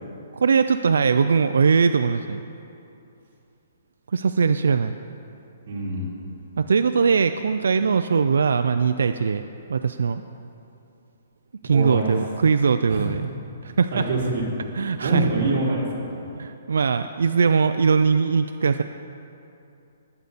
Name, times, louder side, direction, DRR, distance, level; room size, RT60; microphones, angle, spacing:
voice 1, 0.3-2.4 4.1-5.0 6.6-9.4 9.7-10.2 11.6-13.2 13.6-14.0 14.8-15.3 16.4-18.8, right 5 dB, 90° right, 9 dB, 0.4 m, -20 dB
voice 2, 5.7-6.2 11.7-12.0 12.8-13.2 13.9-14.5 15.0-16.3, right 2 dB, 45° right, -5 dB, 3.4 m, -26 dB
20.0 x 8.1 x 4.1 m, 2.7 s
hypercardioid pair, 180°, 0 cm